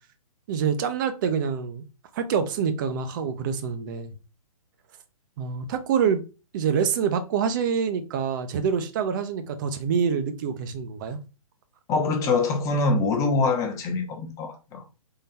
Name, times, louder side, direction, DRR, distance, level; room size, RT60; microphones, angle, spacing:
voice 1, 0.5-1.8 2.1-4.1 5.4-6.2 6.5-11.2, right 7 dB, 35° right, 0.7 m, -26 dB
voice 2, 11.9-14.8, left 3 dB, 15° left, 0.8 m, -24 dB
3.9 x 3.2 x 4.1 m
hypercardioid pair, 150°, 19 cm